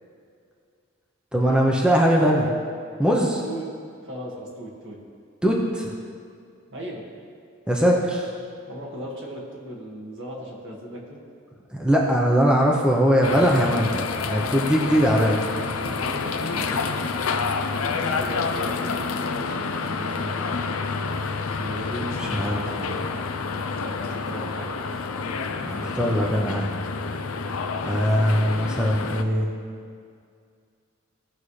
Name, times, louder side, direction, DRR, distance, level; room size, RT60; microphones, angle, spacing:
voice 1, 1.3-2.5 3.0-3.4 5.4-5.9 7.7-8.3 11.7-15.4 22.2-22.9 25.6-26.7 27.8-29.5, equal, 5° right, -2 dB, 0.8 m, -21 dB
voice 2, 4.0-5.0 6.7-7.0 8.7-11.2 15.7-17.1 17.5-20.6 21.6-22.7 23.5-24.8, right 1 dB, 65° right, -3 dB, 1.8 m, -37 dB
sound 1, 13.2-29.2, left 4 dB, 80° left, 0.6 m, -28 dB
16.5 x 5.6 x 3.3 m, 2.3 s
head